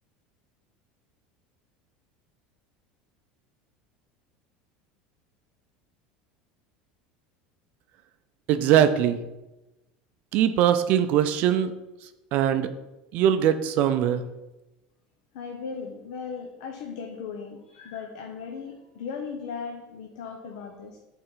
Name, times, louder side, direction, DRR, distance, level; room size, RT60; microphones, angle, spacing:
voice 1, 8.5-9.2 10.3-11.7 12.3-12.7 13.1-14.2, right 10 dB, 50° right, 9 dB, 0.4 m, -21 dB
voice 2, 15.3-21.0, left 5 dB, 80° left, 3 dB, 0.8 m, -37 dB
5.6 x 4.3 x 5.5 m, 1.0 s
supercardioid pair, 145°, 3 cm